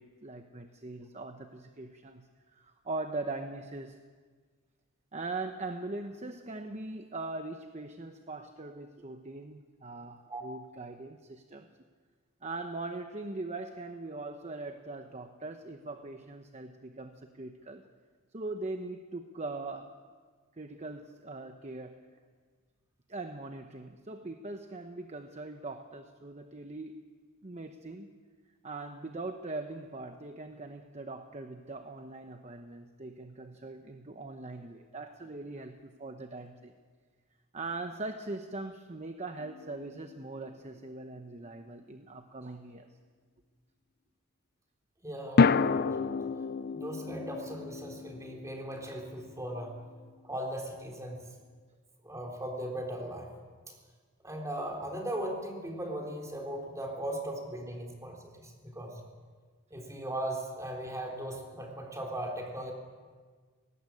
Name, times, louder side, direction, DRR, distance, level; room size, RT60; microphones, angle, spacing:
voice 1, 0.0-4.0 5.1-11.7 12.4-17.8 18.3-20.0 20.6-22.0 23.1-27.0 27.4-28.1 28.6-36.7 37.5-42.9, right 2 dB, 30° right, 6 dB, 1.0 m, -41 dB
sound 1, 39.4-40.5 45.4-49.7, left 4 dB, 50° left, 0.5 m, -30 dB
voice 2, 45.0-45.9 46.7-49.7 50.2-51.2 52.0-53.3 54.2-59.0 59.7-62.7, right 1 dB, 15° right, 1 dB, 3.7 m, -38 dB
19.5 x 18.5 x 8.5 m, 1.5 s
head